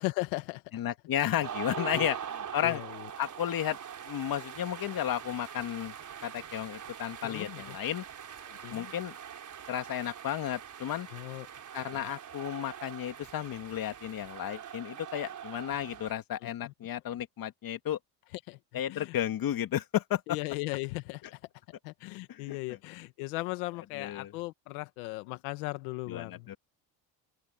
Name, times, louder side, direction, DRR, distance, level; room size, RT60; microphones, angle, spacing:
voice 1, 0.0-0.6 1.7-2.2 2.6-3.1 7.2-7.8 8.5-8.9 11.1-11.5 11.9-12.1 16.4-16.7 18.3-19.2 20.3-21.4 21.8-26.5, left 22 dB, 90° left, 1.4 m, -38 dB
voice 2, 0.7-2.2 2.5-2.8 3.2-3.8 4.0-5.9 6.2-8.0 8.7-9.1 9.7-11.1 11.7-18.0 18.7-20.2 22.3-22.6 24.0-24.3 26.1-26.6, left 11 dB, 50° left, 2.6 m, -33 dB
sound 1, 1.4-16.1, right 8 dB, 45° right, 3.9 m, -43 dB
open air
supercardioid pair, 85°, 43 cm